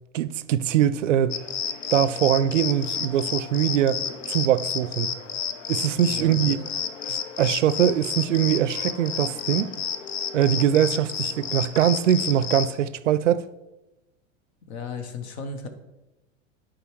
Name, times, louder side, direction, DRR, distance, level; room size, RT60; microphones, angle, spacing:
voice 1, 0.1-1.4 1.9-5.1 5.7-6.6 7.1-9.7 10.3-13.5, right 10 dB, 75° right, 0.5 m, -22 dB
sound 1, 1.3-12.7, left 7 dB, 75° left, 0.6 m, -31 dB
voice 2, 6.1-6.6 14.7-15.7, left 4 dB, 60° left, 0.9 m, -35 dB
11.5 x 4.8 x 3.1 m
figure-of-eight pair, 80°, 37 cm